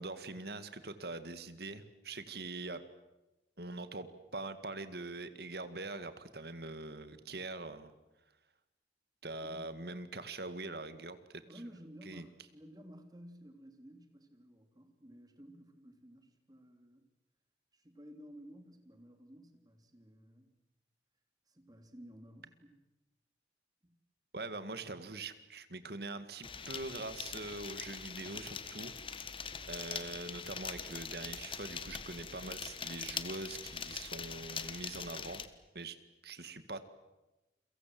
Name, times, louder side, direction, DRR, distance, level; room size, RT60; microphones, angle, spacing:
voice 1, 0.0-2.8 3.6-7.9 9.2-11.2 12.1-12.2 24.3-29.3 29.7-35.4 35.7-36.0 36.2-36.8, right 2 dB, 60° right, 11 dB, 2.1 m, -43 dB
voice 2, 9.4-9.7 11.5-17.1 17.7-20.5 21.5-22.8 23.8-23.9, equal, 20° right, 5 dB, 3.3 m, -54 dB
sound 1, 26.4-35.5, left 6 dB, 30° left, 1.5 m, -43 dB
30.0 x 24.0 x 7.8 m, 1.0 s
head